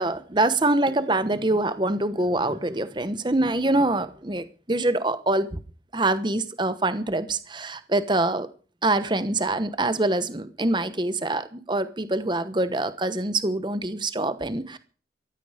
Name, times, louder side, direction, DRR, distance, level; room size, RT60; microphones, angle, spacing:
voice 1, 0.0-5.6 5.9-8.5 8.8-14.8, right 2 dB, 25° right, 12 dB, 1.1 m, -25 dB
15.5 x 13.5 x 5.0 m, 0.39 s
head